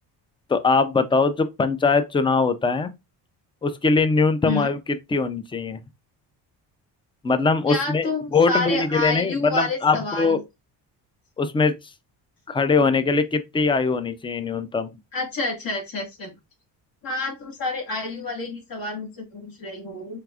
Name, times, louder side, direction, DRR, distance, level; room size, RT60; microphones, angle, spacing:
voice 1, 0.5-2.9 3.6-4.8 5.1-5.8 7.2-10.4 11.4-11.8 12.5-14.9, left 4 dB, 10° left, 0.4 m, -21 dB
voice 2, 7.7-10.4 15.1-16.3 17.0-20.2, left 3 dB, 55° left, 2.1 m, -29 dB
4.6 x 3.4 x 2.4 m
cardioid pair, 95°, 42 cm